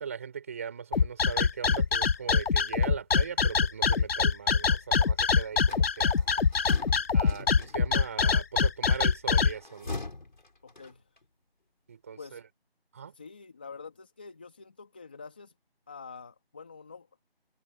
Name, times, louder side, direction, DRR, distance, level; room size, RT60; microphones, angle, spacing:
voice 1, 0.0-6.3 7.1-9.9 11.9-12.4 12.9-13.1, right 7 dB, 15° right, 5.8 m, -39 dB
sound 1, 0.9-9.5, left 5 dB, 70° left, 0.6 m, -24 dB
sound 2, 5.6-8.1 9.5-11.3, left 2 dB, 50° left, 6.8 m, -42 dB
voice 2, 10.6-11.1 12.2-12.4 13.1-15.5 15.9-17.1, left 5 dB, 10° left, 2.1 m, -46 dB
figure-of-eight pair, 175°, 31 cm